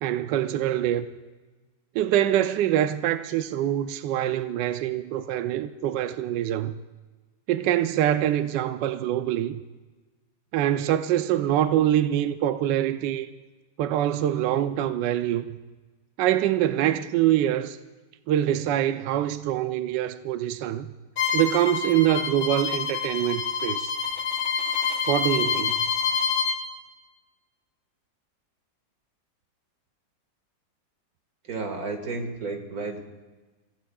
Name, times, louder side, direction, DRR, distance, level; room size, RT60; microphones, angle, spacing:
voice 1, 0.0-1.1 1.9-6.8 7.5-9.6 10.5-13.3 13.8-15.6 16.2-17.8 18.3-20.9 21.3-23.9 25.1-25.9, right 12 dB, 75° right, 1.3 m, -24 dB
Bowed string instrument, 21.2-26.6, left 6 dB, 55° left, 1.7 m, -27 dB
voice 2, 31.4-33.0, right 3 dB, 55° right, 2.3 m, -32 dB
29.5 x 16.5 x 2.4 m
omnidirectional pair, 2.0 m